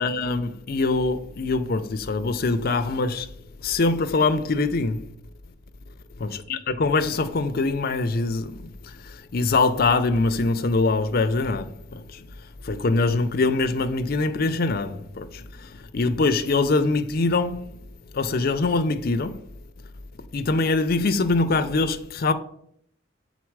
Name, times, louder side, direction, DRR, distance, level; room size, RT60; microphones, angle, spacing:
voice 1, 0.0-3.3 3.6-5.1 6.2-12.3 12.6-17.6 18.1-19.5 20.3-22.3, left 3 dB, 50° left, 0.5 m, -23 dB
7.3 x 4.1 x 4.6 m
head